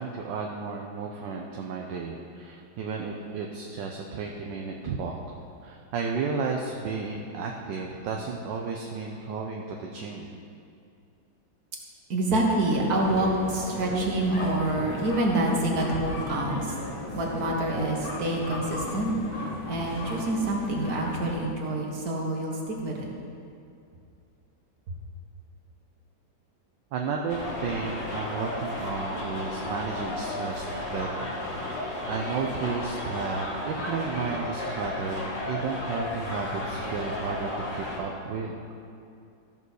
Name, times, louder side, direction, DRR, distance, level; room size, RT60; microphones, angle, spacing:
voice 1, 0.0-10.3 26.9-31.8 32.1-38.5, right 5 dB, 70° right, 1 dB, 1.4 m, -33 dB
voice 2, 12.1-16.6 17.1-19.1 19.7-23.1, right 1 dB, 55° right, -1 dB, 2.0 m, -27 dB
sound 1, 12.6-21.4, left 2 dB, 85° left, 2.2 m, -37 dB
sound 2, 27.3-38.0, left 1 dB, 65° left, 2.7 m, -33 dB
14.0 x 5.4 x 6.3 m, 2.5 s
omnidirectional pair, 2.1 m